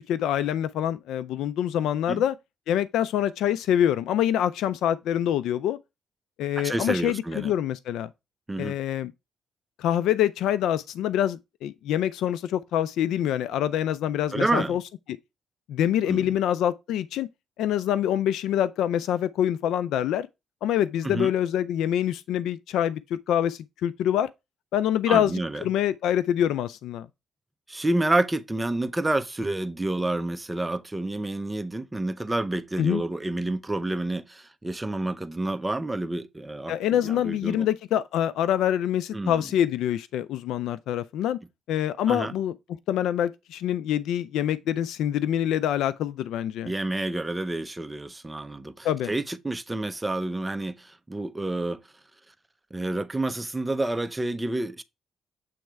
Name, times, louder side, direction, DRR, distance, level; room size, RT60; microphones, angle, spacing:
voice 1, 0.0-2.3 2.7-5.8 6.4-8.1 8.6-9.1 9.8-14.8 15.7-17.3 17.6-20.3 20.6-24.3 24.7-27.1 32.8-33.0 36.7-41.4 41.7-42.5 42.9-46.7 48.8-49.1, left 10 dB, 85° left, 0.3 m, -25 dB
voice 2, 6.6-7.5 8.5-8.8 14.3-14.8 16.1-16.3 21.0-21.3 25.1-25.7 27.7-37.7 39.1-39.4 42.1-42.3 46.6-51.8 52.7-54.8, right 2 dB, 15° right, 0.6 m, -29 dB
7.7 x 3.1 x 4.5 m
cardioid pair, 90°, 0 cm